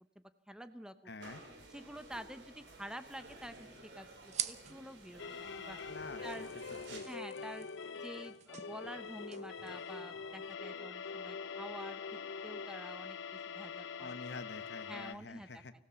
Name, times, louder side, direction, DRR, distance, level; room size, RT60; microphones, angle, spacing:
voice 1, 0.5-0.9 1.7-5.8 6.2-6.5 7.0-7.7 8.0-12.0 12.4-14.1 14.9-15.6, right 1 dB, 5° right, 11 dB, 0.8 m, -48 dB
voice 2, 1.1-1.4 5.9-6.5 6.9-7.0 14.0-15.7, left 3 dB, 60° left, 13 dB, 1.0 m, -47 dB
sound 1, 1.2-7.0, right 2 dB, 75° right, 4.4 m, -53 dB
sound 2, 2.9-10.5, right 10 dB, 35° right, 0.8 m, -48 dB
sound 3, 5.2-15.1, left 5 dB, 80° left, 0.7 m, -44 dB
25.0 x 16.5 x 6.9 m, 0.90 s
head